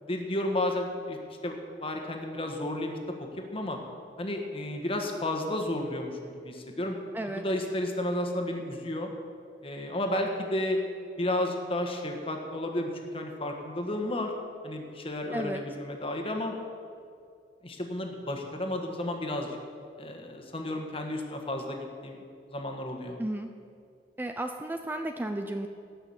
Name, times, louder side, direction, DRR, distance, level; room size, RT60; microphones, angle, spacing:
voice 1, 0.0-1.2 1.4-1.5 1.8-2.9 3.2-3.8 4.2-7.0 7.3-9.1 9.6-10.8 11.2-14.3 14.6-16.5 17.6-19.6 20.0-22.2 22.5-23.2, left 1 dB, 35° left, 3 dB, 1.5 m, -32 dB
voice 2, 7.1-7.4 15.3-15.6 23.2-23.5 24.2-25.7, right 1 dB, 10° right, 6 dB, 0.5 m, -33 dB
17.5 x 6.1 x 7.2 m, 2.4 s
head